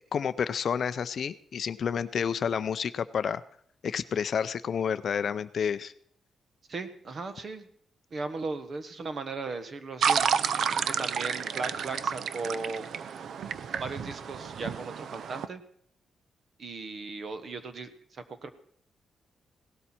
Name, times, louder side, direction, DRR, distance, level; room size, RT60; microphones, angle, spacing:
voice 1, 0.1-3.4 3.8-5.9, left 7 dB, 45° left, 14 dB, 0.5 m, -30 dB
voice 2, 6.7-7.7 8.1-10.2 10.8-12.9 13.8-15.6 16.6-18.6, right 3 dB, 40° right, 11 dB, 1.2 m, -37 dB
sound 1, 10.0-15.5, right 7 dB, 60° right, 0.5 m, -30 dB
17.5 x 12.5 x 4.4 m, 0.66 s
wide cardioid pair, 165°, 0 cm